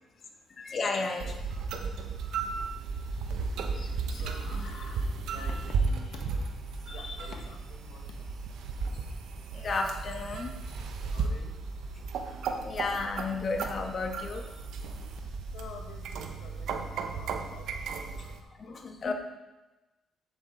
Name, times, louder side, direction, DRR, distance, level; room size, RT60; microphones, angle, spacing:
voice 1, 0.5-1.5 3.7-4.7 6.9-7.3 9.5-10.8 12.5-14.5 18.2-19.1, left 3 dB, 45° left, 3 dB, 1.4 m, -34 dB
sound 1, 1.2-18.4, right 4 dB, 80° right, 0.8 m, -35 dB
voice 2, 4.1-6.4 6.9-8.2 11.0-11.6 15.5-18.4, left 4 dB, 80° left, 2 dB, 1.5 m, -48 dB
8.0 x 7.5 x 3.9 m, 1.1 s
cardioid pair, 90°, 0 cm